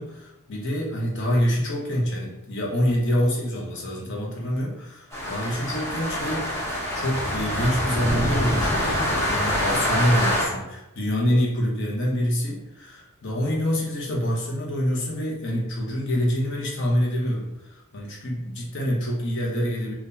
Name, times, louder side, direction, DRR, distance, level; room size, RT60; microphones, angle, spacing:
voice 1, 0.0-6.6 6.9-19.9, equal, 55° left, -2 dB, 0.8 m, -26 dB
sound 1, 5.1-10.5, equal, 10° left, 0.8 m, -25 dB
3.8 x 2.4 x 2.6 m, 0.92 s
head